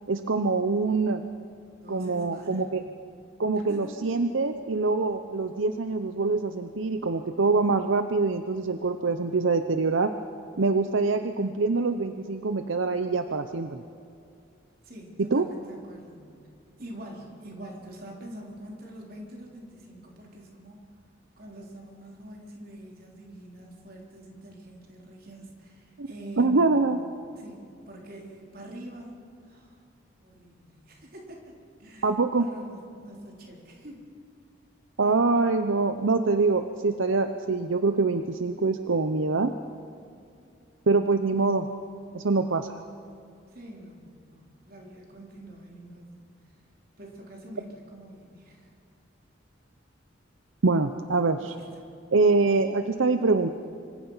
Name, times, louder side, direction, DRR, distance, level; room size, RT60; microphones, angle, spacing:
voice 1, 0.1-1.2 1.9-2.8 3.4-10.1 10.6-13.8 15.2-15.5 26.0-26.1 26.4-27.0 32.0-32.5 35.0-39.5 40.9-41.7 42.1-42.8 50.6-51.5 52.1-53.5, right 3 dB, 80° right, 8 dB, 0.8 m, -24 dB
voice 2, 1.8-2.7 3.6-3.9 14.8-16.3 16.8-20.8 21.4-27.1 27.4-29.8 30.2-31.5 31.8-34.0 35.0-35.3 43.5-46.3 47.0-48.7 51.4-51.8, right 1 dB, 50° right, -1 dB, 3.8 m, -45 dB
25.5 x 25.0 x 5.7 m, 2.4 s
head